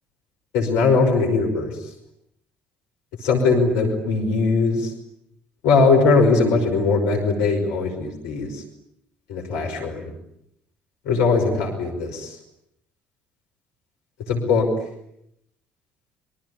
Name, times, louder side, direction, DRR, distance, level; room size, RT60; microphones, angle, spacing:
voice 1, 0.5-1.7 3.2-4.9 5.6-8.6 9.3-10.1 11.1-12.4 14.3-14.7, left 4 dB, 70° left, 2 dB, 5.4 m, -20 dB
27.0 x 25.0 x 8.6 m, 0.76 s
hypercardioid pair, 55°, 5 cm